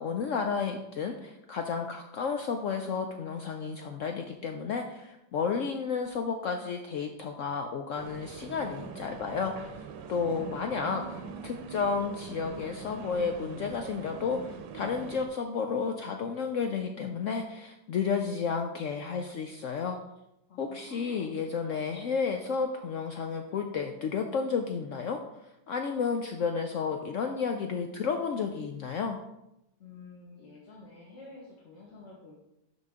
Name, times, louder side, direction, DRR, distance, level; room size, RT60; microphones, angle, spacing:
voice 1, 0.0-9.5 10.1-11.0 11.4-20.0 20.6-25.2 25.7-29.2, left 5 dB, 85° left, 5 dB, 0.6 m, -32 dB
sound 1, 7.9-15.3, right 6 dB, 80° right, 1.4 m, -43 dB
voice 2, 10.1-11.6 20.5-21.7 29.8-32.4, left 3 dB, 45° left, -5 dB, 1.4 m, -50 dB
11.5 x 3.9 x 3.6 m, 0.87 s
omnidirectional pair, 2.0 m